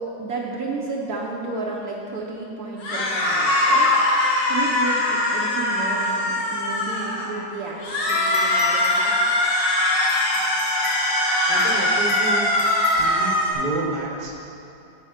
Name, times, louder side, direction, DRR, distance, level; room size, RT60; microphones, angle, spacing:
voice 1, 0.0-3.9 4.5-9.3, right 3 dB, 65° right, -2 dB, 1.1 m, -32 dB
sound 1, 2.8-7.3 7.8-13.5, left 1 dB, 70° left, 1.9 m, -21 dB
sound 2, 7.3-13.8, left 3 dB, 50° left, 1.5 m, -31 dB
voice 2, 11.5-12.5 12.9-14.3, right 2 dB, 30° right, -2 dB, 0.9 m, -30 dB
8.4 x 6.3 x 5.0 m, 2.8 s
omnidirectional pair, 2.0 m